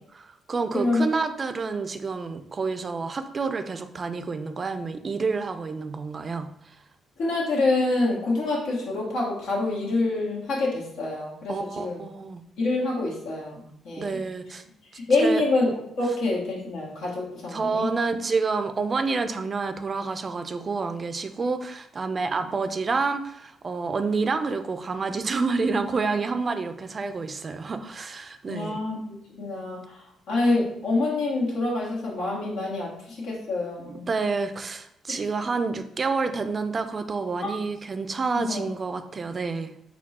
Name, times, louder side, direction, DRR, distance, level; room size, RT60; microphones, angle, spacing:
voice 1, 0.1-6.5 11.5-12.4 14.0-14.6 15.2-15.4 17.5-28.8 33.8-39.7, right 4 dB, 35° right, 9 dB, 0.4 m, -28 dB
voice 2, 0.7-1.0 7.2-12.0 12.6-14.2 14.9-17.9 28.5-30.0 30.3-34.1 35.1-35.2 37.4-37.5 38.3-38.6, left 2 dB, 85° left, -4 dB, 1.5 m, -26 dB
4.3 x 2.3 x 4.2 m, 0.75 s
cardioid pair, 90°, 0 cm